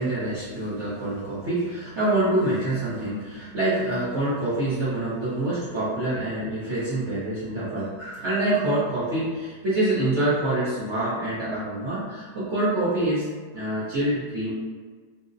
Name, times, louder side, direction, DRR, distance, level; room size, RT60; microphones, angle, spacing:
voice 1, 0.0-13.3 13.5-14.5, right 1 dB, 55° right, -10 dB, 0.8 m, -26 dB
3.8 x 2.0 x 2.5 m, 1.5 s
omnidirectional pair, 1.8 m